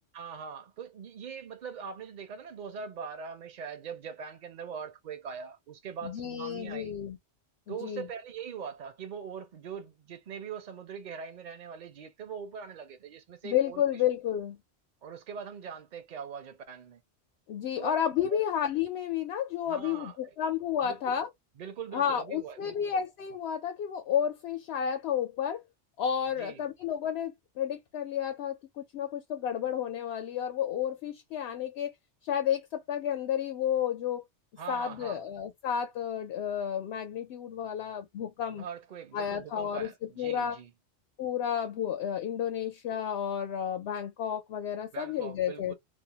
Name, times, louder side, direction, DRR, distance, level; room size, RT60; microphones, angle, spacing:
voice 1, 0.1-6.9 7.7-13.8 15.0-17.0 17.8-17.9 18.3-18.4 19.7-20.4 20.8-21.2 21.6-22.9 26.4-26.6 34.6-35.2 38.5-40.7 44.9-45.7, right 7 dB, 55° right, 0.5 m, -42 dB
voice 2, 6.0-7.2 7.7-8.1 13.4-14.6 17.5-21.3 21.9-25.6 26.0-31.9 32.2-34.2 34.7-38.7 39.1-40.6 41.2-45.7, left 9 dB, 70° left, 0.8 m, -31 dB
2.5 x 2.0 x 2.7 m
omnidirectional pair, 1.1 m